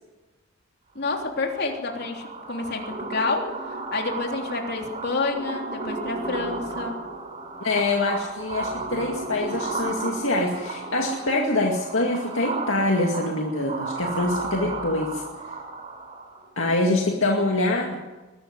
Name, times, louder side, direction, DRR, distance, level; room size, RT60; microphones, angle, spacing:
voice 1, 0.9-3.5 3.9-7.0, left 3 dB, 50° left, 2 dB, 3.3 m, -28 dB
sound 1, 1.1-16.5, right 3 dB, 30° right, 3.8 m, -34 dB
voice 2, 7.6-15.5 16.6-17.9, left 2 dB, 65° left, 0 dB, 2.3 m, -25 dB
21.5 x 13.0 x 9.7 m, 1.2 s
head